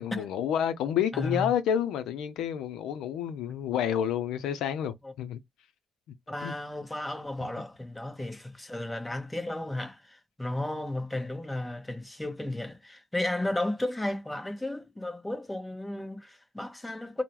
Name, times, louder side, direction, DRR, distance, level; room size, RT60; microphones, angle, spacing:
voice 1, 0.0-5.4 6.4-6.5, left 9 dB, 90° left, 0.4 m, -29 dB
voice 2, 1.1-1.5 3.5-3.6 5.0-5.1 6.3-17.2, left 1 dB, 10° left, 0.8 m, -34 dB
3.6 x 2.0 x 2.9 m
cardioid pair, 90°, 0 cm